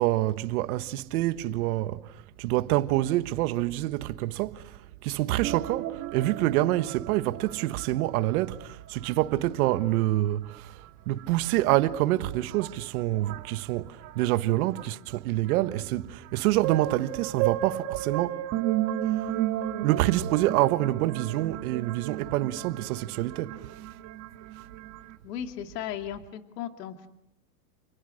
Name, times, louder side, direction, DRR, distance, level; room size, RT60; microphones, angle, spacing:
voice 1, 0.0-18.4 19.0-19.2 19.8-23.7, right 16 dB, 60° right, 1.5 m, -27 dB
sound 1, 5.4-8.0 8.3-8.7 9.0-9.3 9.9-10.0 11.2-11.3 12.1-12.2 12.4-13.5 14.0-14.3 14.8-14.9 15.5-25.2, right 13 dB, 35° right, 2.0 m, -34 dB
voice 2, 25.2-27.1, left 10 dB, 70° left, 2.4 m, -36 dB
30.0 x 29.0 x 6.5 m
supercardioid pair, 145°, 49 cm